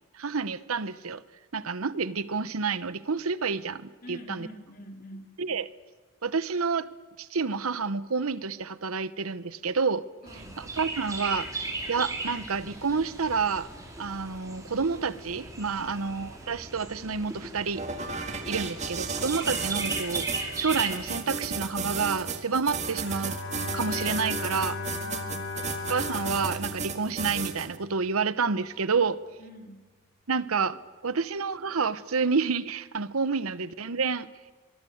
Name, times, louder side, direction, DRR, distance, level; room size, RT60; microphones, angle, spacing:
voice 1, 0.1-1.2 1.5-4.5 5.4-5.7 6.2-6.9 7.2-10.0 10.6-11.6 11.9-13.7 14.0-17.8 18.5-23.4 23.7-24.8 25.9-29.2 30.3-30.8 31.0-34.3, right 5 dB, 85° right, 15 dB, 0.9 m, -29 dB
voice 2, 4.0-5.3 10.2-10.6 25.0-25.5 29.4-29.8, equal, 40° left, 3 dB, 3.9 m, -46 dB
Chirp tweet, 10.3-21.1, right 2 dB, 15° right, 3.9 m, -37 dB
sound 1, 17.7-27.8, right 5 dB, 30° right, 2.0 m, -33 dB
Bowed string instrument, 22.8-28.2, left 3 dB, 60° left, 5.4 m, -37 dB
24.5 x 23.5 x 8.0 m, 1.4 s
head